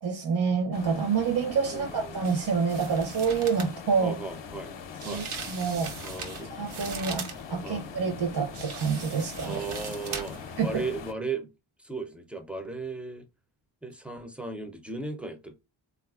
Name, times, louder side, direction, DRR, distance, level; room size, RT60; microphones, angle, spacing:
voice 1, 0.0-4.2 5.0-5.9 6.5-9.6 10.6-10.8, right 5 dB, 55° right, 0.7 m, -28 dB
sound 1, 0.7-11.1, left 6 dB, 65° left, 0.5 m, -42 dB
voice 2, 1.7-2.2 4.0-4.7 5.1-5.2 6.0-6.5 7.6-7.9 9.4-11.5 11.8-13.2 13.8-15.5, right 3 dB, 5° right, 0.4 m, -36 dB
sound 2, 2.2-2.4 2.7-3.8 5.0-7.4 8.5-10.5 10.8-10.9, right 5 dB, 85° right, 0.8 m, -39 dB
3.6 x 2.4 x 2.3 m
wide cardioid pair, 130°, 49 cm